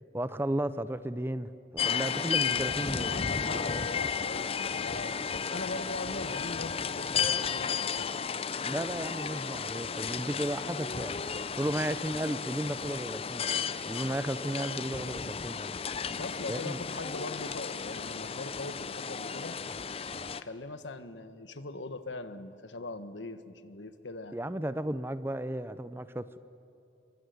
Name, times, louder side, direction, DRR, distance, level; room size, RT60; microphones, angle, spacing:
voice 1, 0.1-3.2 8.6-11.2 11.6-15.7 16.5-16.8 24.3-26.4, right 1 dB, 15° right, 13 dB, 0.7 m, -34 dB
sound 1, 1.8-20.4, left 6 dB, 30° left, 0.6 m, -33 dB
voice 2, 3.0-8.1 16.2-19.6 20.3-24.4, left 2 dB, 90° left, 11 dB, 1.4 m, -41 dB
26.5 x 23.5 x 9.5 m, 2.6 s
head